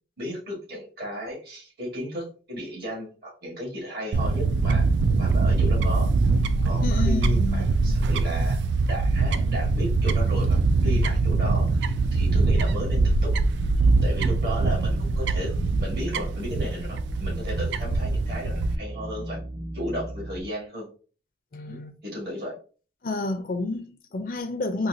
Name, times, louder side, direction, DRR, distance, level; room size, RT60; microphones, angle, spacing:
voice 1, 0.2-4.9 5.2-6.1 6.6-8.6 8.9-13.4 14.0-19.4 19.7-20.9 21.7-22.6, equal, 60° right, 1.5 m, -34 dB
Fowl / Bird, 4.1-18.8, right 3 dB, 85° right, 0.3 m, -23 dB
voice 2, 6.8-7.8 21.5-21.9 23.0-24.9, left 2 dB, 50° left, 0.4 m, -30 dB
sound 1, 10.8-20.4, right 1 dB, 30° right, 0.7 m, -36 dB
4.0 x 2.3 x 2.6 m
head